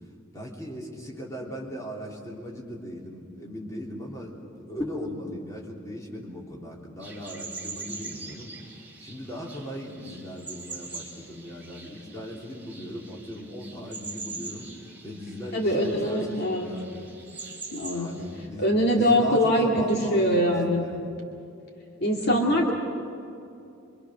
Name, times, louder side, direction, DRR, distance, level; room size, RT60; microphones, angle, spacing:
voice 1, 0.3-8.6 9.0-17.1 17.9-21.2 22.1-22.4, equal, 15° left, -3 dB, 3.6 m, -38 dB
sound 1, 7.0-18.5, right 4 dB, 10° right, 3.9 m, -43 dB
voice 2, 15.5-16.7 17.7-18.1 18.6-20.8 22.0-22.7, equal, 50° left, -1 dB, 2.4 m, -23 dB
25.5 x 25.5 x 6.4 m, 2.6 s
head